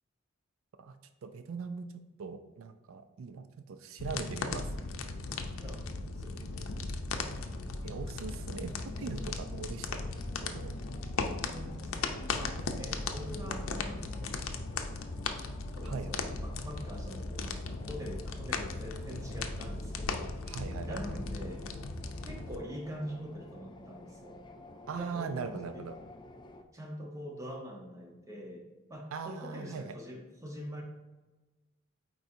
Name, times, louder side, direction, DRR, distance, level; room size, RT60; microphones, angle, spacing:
voice 1, 1.2-4.8 7.8-10.0 10.4-10.7 15.8-16.4 20.5-21.2 24.9-26.0 29.1-30.0, right 5 dB, 80° right, 9 dB, 0.4 m, -40 dB
sound 1, 4.0-22.6, left 3 dB, 80° left, 0.6 m, -37 dB
voice 2, 6.1-7.0 11.2-14.4 14.7-20.4 20.9-21.7 22.2-24.4 24.9-25.9 26.7-30.8, equal, 15° right, 0 dB, 1.0 m, -44 dB
sound 2, 7.2-26.6, left 2 dB, 20° left, 0.4 m, -52 dB
8.9 x 4.0 x 2.7 m, 1.2 s
head